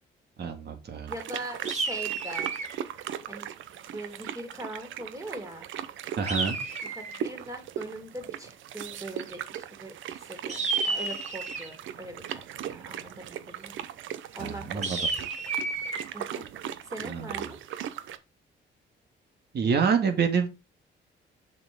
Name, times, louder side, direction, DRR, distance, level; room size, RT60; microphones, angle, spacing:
voice 1, 0.4-1.1 6.2-6.6 14.4-15.0 17.0-17.5 19.5-20.5, right 6 dB, 55° right, 6 dB, 2.1 m, -27 dB
voice 2, 1.1-2.5 3.3-3.5 3.9-5.7 6.9-12.2 12.6-13.7 14.3-15.2 16.1-16.5 16.8-17.6, right 1 dB, 15° right, 3 dB, 3.4 m, -41 dB
sound 1, 1.1-18.2, right 10 dB, 75° right, 0.8 m, -39 dB
sound 2, 1.6-2.8 6.3-7.3 10.5-11.8 14.8-16.0, right 4 dB, 35° right, 2.2 m, -31 dB
7.0 x 6.4 x 3.6 m, 0.25 s
cardioid pair, 90°, 20 cm